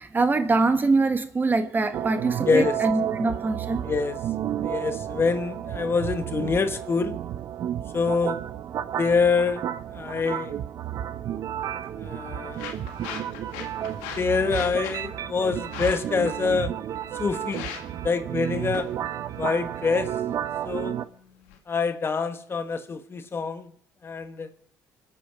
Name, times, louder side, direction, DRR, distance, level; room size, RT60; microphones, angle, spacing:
voice 1, 0.0-3.9, right 3 dB, 30° right, 9 dB, 1.4 m, -24 dB
sound 1, 1.9-21.0, right 10 dB, 60° right, 0.8 m, -32 dB
voice 2, 3.8-4.2 4.6-7.2 7.9-8.4 9.0-9.6 9.9-10.6 12.0-12.6 14.2-16.7 17.2-17.7 18.0-18.9 19.4-20.1 20.6-20.9 21.7-23.7 24.0-24.5, left 4 dB, 35° left, 9 dB, 1.3 m, -25 dB
sound 2, 11.6-21.6, left 8 dB, 85° left, 1.7 m, -42 dB
24.5 x 8.6 x 5.1 m, 0.66 s
supercardioid pair, 65°, 7 cm